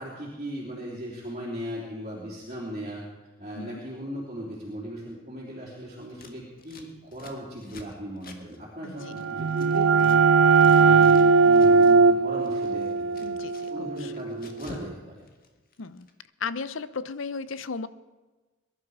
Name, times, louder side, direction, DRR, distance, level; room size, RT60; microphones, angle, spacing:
voice 1, 0.0-3.0 3.4-10.2 10.6-13.3 13.7-15.2, equal, 35° right, -6 dB, 3.2 m, -37 dB
Scissors, 6.1-10.2 10.4-12.1 12.4-14.9 15.2-16.1, left 2 dB, 45° left, 1.6 m, -49 dB
voice 2, 8.8-9.1 13.2-14.1 15.8-16.1 16.4-17.9, left 5 dB, 65° left, 15 dB, 0.7 m, -35 dB
sound 1, 9.0-14.6, right 5 dB, 85° right, 0.5 m, -19 dB
22.0 x 11.5 x 4.9 m, 1.3 s
head